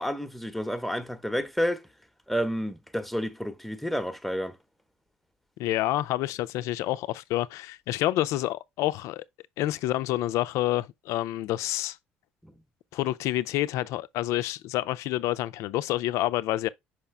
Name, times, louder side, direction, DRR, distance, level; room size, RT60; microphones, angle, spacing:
voice 1, 0.0-1.8 2.3-4.6, equal, 5° left, 0.9 m, -30 dB
voice 2, 5.6-9.2 9.6-12.0 12.9-16.7, left 15 dB, 70° left, 0.5 m, -28 dB
5.8 x 4.9 x 3.3 m
hypercardioid pair, 65°, 5 cm